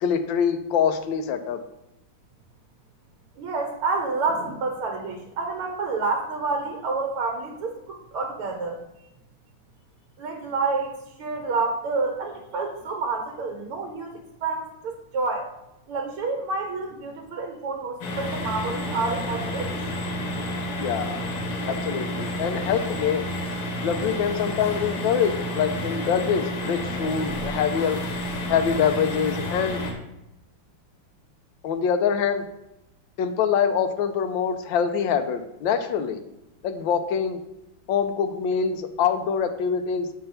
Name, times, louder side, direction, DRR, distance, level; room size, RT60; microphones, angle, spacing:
voice 1, 0.0-1.6 20.8-21.2 21.7-23.2 23.8-28.0 28.5-29.8 31.6-32.4 33.2-36.2 36.6-37.4 37.9-40.2, left 7 dB, 70° left, 8 dB, 1.4 m, -24 dB
voice 2, 3.4-8.8 10.2-10.9 11.2-15.5 15.9-19.7, right 3 dB, 80° right, 3 dB, 1.9 m, -28 dB
sound 1, 18.0-29.9, left 1 dB, 90° left, 2.4 m, -30 dB
7.6 x 5.6 x 5.7 m, 0.90 s
omnidirectional pair, 2.4 m